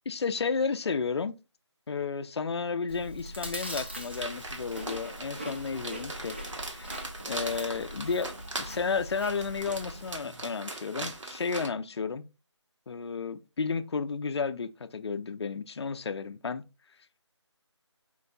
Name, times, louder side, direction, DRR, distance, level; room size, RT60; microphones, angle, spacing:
voice 1, 0.1-1.3 1.9-6.4 6.7-12.2 12.9-16.6, left 5 dB, 65° left, 0.4 m, -32 dB
Chewing mastication, 2.9-10.2, equal, 20° right, 0.4 m, -42 dB
sound 1, 4.1-11.7, right 2 dB, 85° right, 1.2 m, -40 dB
4.5 x 2.2 x 3.9 m
figure-of-eight pair, 170°, 15 cm